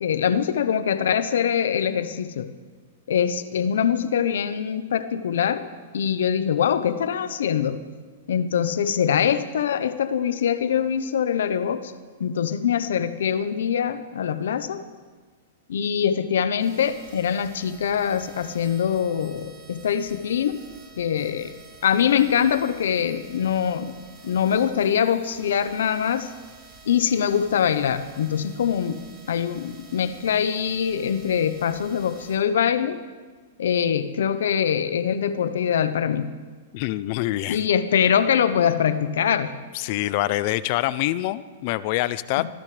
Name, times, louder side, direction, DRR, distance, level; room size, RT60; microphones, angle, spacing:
voice 1, 0.0-2.5 3.1-5.7 5.9-7.8 8.3-11.9 12.2-14.8 15.7-20.6 21.0-21.5 21.8-23.9 24.2-26.3 26.9-29.0 29.3-33.0 33.6-36.3 37.5-39.5 42.4-42.5, left 8 dB, 80° left, 1.0 m, -23 dB
sound 1, 16.6-32.4, right 4 dB, 30° right, 6.3 m, -49 dB
voice 2, 36.7-37.7 39.7-42.5, left 16 dB, 45° left, 0.6 m, -25 dB
25.5 x 15.5 x 3.4 m
hypercardioid pair, 150°, 0 cm